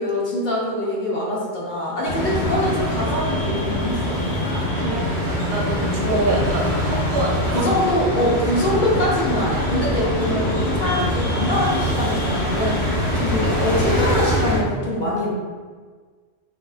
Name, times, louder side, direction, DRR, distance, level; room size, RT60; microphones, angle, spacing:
voice 1, 0.0-4.2 6.0-6.5 7.5-15.3, left 1 dB, 50° left, -5 dB, 0.8 m, -23 dB
sound 1, 2.1-14.6, left 1 dB, 80° left, 1.4 m, -23 dB
voice 2, 4.5-7.6, right 2 dB, 80° right, -2 dB, 0.9 m, -28 dB
3.7 x 2.5 x 2.3 m, 1.5 s
omnidirectional pair, 1.1 m